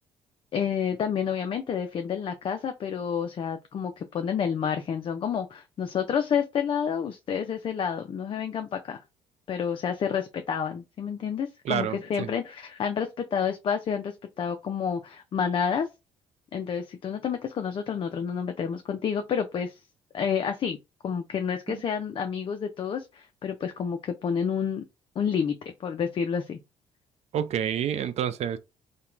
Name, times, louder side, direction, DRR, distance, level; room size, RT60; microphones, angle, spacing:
voice 1, 0.5-9.0 9.5-15.9 16.5-19.8 20.1-20.8 21.0-24.8 25.2-25.5 25.8-26.6, left 7 dB, 40° left, 0.4 m, -29 dB
voice 2, 11.6-12.3 21.7-21.8 27.3-28.6, right 9 dB, 50° right, 0.4 m, -29 dB
2.8 x 2.2 x 2.4 m
hypercardioid pair, 55°, 14 cm